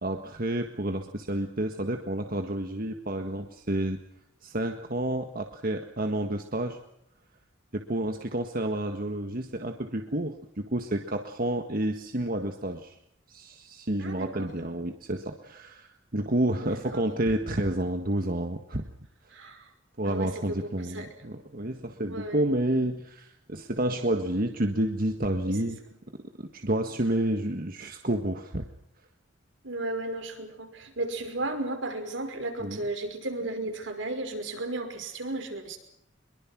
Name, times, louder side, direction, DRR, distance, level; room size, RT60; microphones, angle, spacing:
voice 1, 0.0-4.0 4.4-6.8 7.7-13.0 13.3-18.9 20.0-25.8 26.4-28.7 32.6-32.8, right 1 dB, 50° right, 5 dB, 1.7 m, -30 dB
voice 2, 14.0-14.5 16.6-17.0 19.3-19.7 20.0-20.3 20.6-21.1 22.1-22.4 25.4-25.6 29.6-35.8, right 2 dB, 80° right, 5 dB, 5.6 m, -34 dB
24.5 x 23.0 x 6.1 m, 0.75 s
head